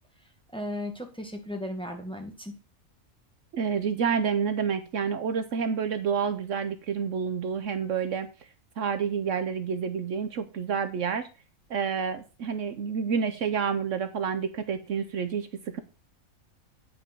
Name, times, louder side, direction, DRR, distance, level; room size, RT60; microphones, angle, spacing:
voice 1, 0.5-2.5, left 1 dB, 5° left, 3 dB, 1.6 m, -35 dB
voice 2, 3.5-8.3 8.8-11.3 11.7-15.8, right 6 dB, 65° right, 10 dB, 1.1 m, -29 dB
9.1 x 5.3 x 5.9 m, 0.32 s
omnidirectional pair, 1.4 m